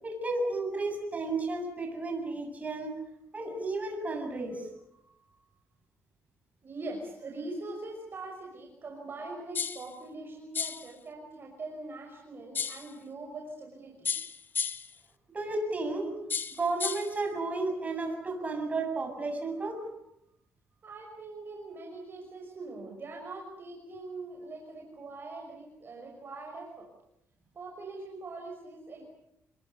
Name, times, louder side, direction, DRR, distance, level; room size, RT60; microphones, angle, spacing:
voice 1, 0.0-3.0 3.3-4.7 15.3-16.2 16.6-19.8, right 2 dB, 30° right, 4 dB, 7.9 m, -32 dB
voice 2, 6.6-14.1 19.7-19.8 20.8-26.9 27.5-29.0, right 2 dB, 45° right, 1 dB, 5.9 m, -42 dB
sound 1, 9.5-9.9 10.5-10.9 12.5-12.9 14.0-14.9 16.3-17.1, left 6 dB, 40° left, 1.1 m, -33 dB
28.0 x 22.5 x 6.9 m, 0.78 s
cardioid pair, 110°, 5 cm